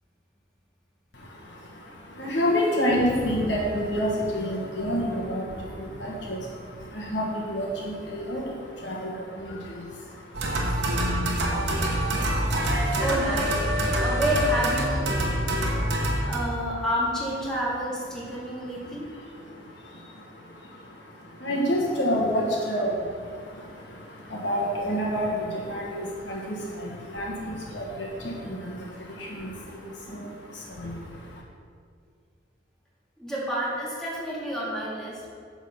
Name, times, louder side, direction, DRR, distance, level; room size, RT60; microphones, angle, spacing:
voice 1, 1.1-13.0 13.8-14.0 15.3-16.3 18.3-31.4, equal, 65° left, -3 dB, 1.4 m, -30 dB
sound 1, 10.3-16.4, right 1 dB, 60° right, 1.1 m, -25 dB
voice 2, 13.0-15.1 16.2-19.1 33.2-35.2, equal, 5° left, -8 dB, 2.1 m, -29 dB
9.4 x 4.0 x 6.6 m, 2.2 s
head